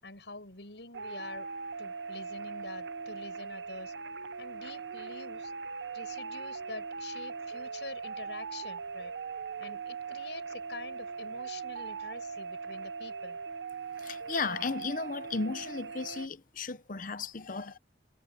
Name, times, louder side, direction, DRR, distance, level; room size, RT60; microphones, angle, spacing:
voice 1, 0.0-1.5 1.8-3.9 4.4-5.5 5.9-9.1 9.6-13.4, left 3 dB, 75° left, 6.4 m, -46 dB
sound 1, 0.9-16.3, right 5 dB, 75° right, 0.7 m, -40 dB
voice 2, 14.0-17.8, left 4 dB, 50° left, 0.9 m, -35 dB
head